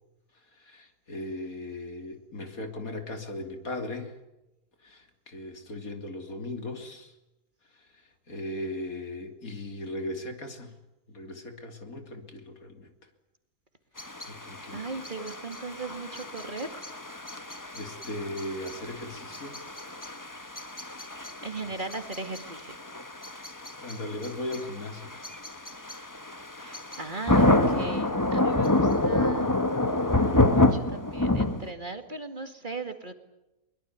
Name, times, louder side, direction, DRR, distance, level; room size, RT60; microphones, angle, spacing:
voice 1, 0.6-4.1 4.8-7.1 8.3-10.7 11.1-12.9 14.3-14.8 17.4-19.6 23.8-25.2 25.7-25.8 28.6-28.9, left 1 dB, 75° left, 6 dB, 3.4 m, -38 dB
sound 1, 14.0-31.7, left 2 dB, 15° left, 1.3 m, -28 dB
voice 2, 14.7-16.9 21.4-22.8 26.5-33.1, right 3 dB, 35° right, 8 dB, 2.3 m, -38 dB
23.0 x 21.5 x 9.5 m, 0.96 s
omnidirectional pair, 1.5 m